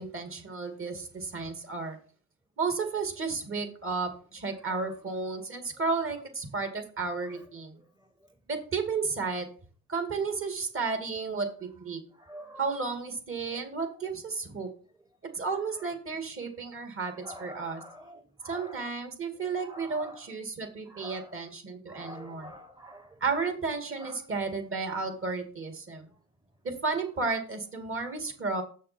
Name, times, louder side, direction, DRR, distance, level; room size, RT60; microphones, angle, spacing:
voice 1, 0.0-2.0 2.6-7.8 8.5-9.5 9.9-12.0 12.6-14.7 15.3-17.8 18.4-22.5 23.2-26.1 26.6-28.6, right 4 dB, 45° right, 2.4 m, -33 dB
voice 2, 12.2-12.6 17.0-18.8 19.6-20.2 20.9-21.3 21.9-23.2 24.0-24.2, equal, 15° right, 0.9 m, -46 dB
7.1 x 6.5 x 4.4 m
cardioid pair, 90°, 30 cm